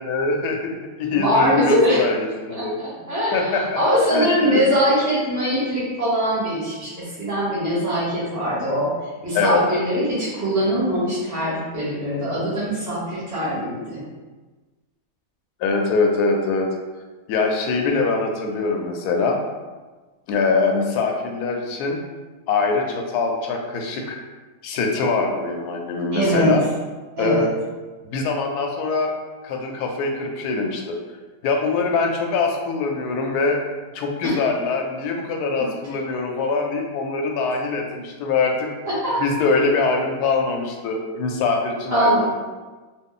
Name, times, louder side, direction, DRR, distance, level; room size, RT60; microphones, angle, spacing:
voice 1, 0.0-2.8 3.3-3.8 4.1-4.6 9.3-9.8 15.6-16.7 17.3-19.4 20.3-22.0 22.5-24.2 24.6-26.6 27.2-27.5 28.0-29.1 29.4-31.0 31.4-33.6 33.9-38.7 39.2-42.3, left 4 dB, 75° left, 2 dB, 1.1 m, -23 dB
voice 2, 1.1-2.0 2.6-2.7 3.1-8.9 9.2-14.0 26.1-26.6 27.2-27.5 34.2-34.4 38.8-39.2 41.9-42.3, equal, 15° right, -11 dB, 0.6 m, -22 dB
3.0 x 2.3 x 3.7 m, 1.3 s
omnidirectional pair, 1.8 m